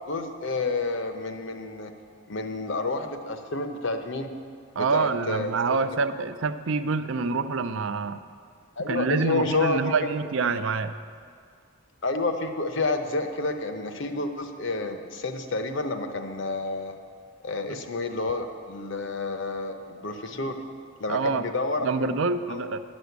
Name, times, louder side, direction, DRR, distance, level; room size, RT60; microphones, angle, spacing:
voice 1, 0.1-1.9 2.3-4.3 4.7-5.5 8.8-10.1 12.0-16.9 17.4-20.6 21.0-22.1 22.5-22.6, left 3 dB, 60° left, 7 dB, 0.8 m, -29 dB
voice 2, 4.8-8.2 8.8-11.0 17.7-17.8 21.1-21.5 21.8-22.8, right 4 dB, 65° right, 11 dB, 0.5 m, -26 dB
10.5 x 6.3 x 8.2 m, 2.2 s
head